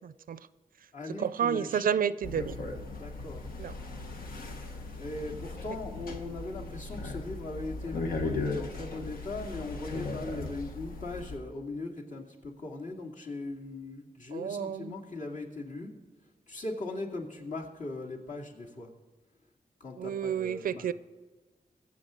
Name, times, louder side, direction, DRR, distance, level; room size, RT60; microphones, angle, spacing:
voice 1, 0.0-0.5 1.2-2.5 3.6-3.7 14.3-14.9 20.0-20.9, right 8 dB, 80° right, 0.5 m, -30 dB
voice 2, 0.9-1.9 2.4-2.5 3.0-3.4 5.0-15.9 16.5-18.9 19.8-20.8, left 2 dB, 60° left, 2.5 m, -39 dB
sound 1, 2.2-11.4, left 3 dB, 90° left, 1.4 m, -38 dB
23.0 x 7.7 x 3.9 m
wide cardioid pair, 105°, 14 cm